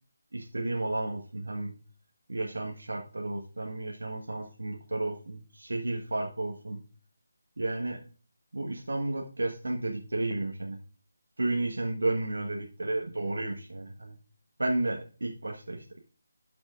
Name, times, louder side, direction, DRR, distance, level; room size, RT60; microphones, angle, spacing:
voice 1, 0.3-1.7 2.3-6.8 7.6-8.0 8.5-10.8 11.4-14.2 14.6-16.0, right 2 dB, 70° right, 1 dB, 1.3 m, -32 dB
12.0 x 5.9 x 2.5 m, 0.38 s
figure-of-eight pair, 155°, 0 cm